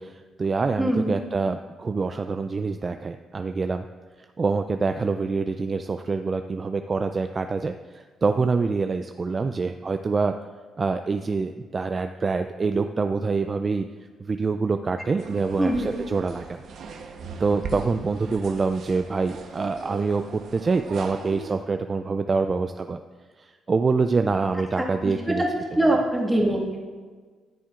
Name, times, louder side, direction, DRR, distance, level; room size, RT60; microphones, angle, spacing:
voice 1, 0.0-3.9 4.4-10.3 10.8-13.9 14.2-16.4 17.4-23.0 23.4-25.4, right 4 dB, 35° right, 7 dB, 0.3 m, -25 dB
voice 2, 0.8-1.1 15.6-15.9 24.8-25.5 25.7-26.9, right 1 dB, 5° right, -2 dB, 1.7 m, -23 dB
sound 1, 15.2-21.5, right 4 dB, 70° right, 0.9 m, -39 dB
13.5 x 7.4 x 2.4 m, 1.5 s
cardioid pair, 90°, 0 cm